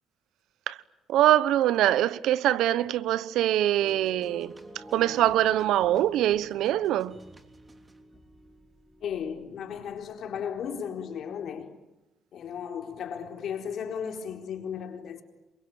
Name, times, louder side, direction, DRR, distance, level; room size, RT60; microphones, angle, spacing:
voice 1, 1.1-7.2, right 13 dB, 85° right, 1.0 m, -24 dB
sound 1, 3.8-9.9 10.5-10.6, right 1 dB, 20° right, 3.2 m, -48 dB
voice 2, 9.0-11.8 12.3-15.2, left 7 dB, 70° left, 4.2 m, -35 dB
27.5 x 23.0 x 9.1 m
cardioid pair, 90°, 0 cm